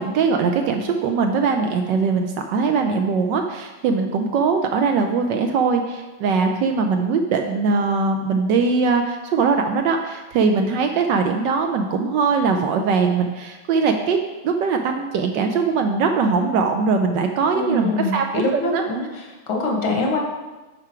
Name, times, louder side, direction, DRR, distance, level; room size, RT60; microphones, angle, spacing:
voice 1, 0.0-14.2 14.4-18.4 18.7-18.8, right 4 dB, 75° right, 4 dB, 1.1 m, -21 dB
voice 2, 17.5-20.2, left 2 dB, 70° left, 0 dB, 2.1 m, -24 dB
9.7 x 4.8 x 4.4 m, 1.2 s
omnidirectional pair, 2.3 m